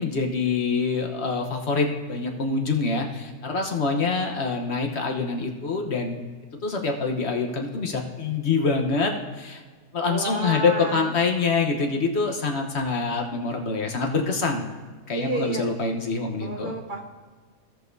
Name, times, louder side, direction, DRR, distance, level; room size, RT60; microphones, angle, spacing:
voice 1, 0.0-6.2 6.6-9.6 9.9-14.7 15.1-16.7, left 4 dB, 55° left, 2 dB, 1.2 m, -25 dB
voice 2, 10.1-11.1 15.2-15.6 16.4-17.0, right 2 dB, 45° right, 2 dB, 0.7 m, -30 dB
17.0 x 6.5 x 2.7 m, 1.4 s
omnidirectional pair, 1.5 m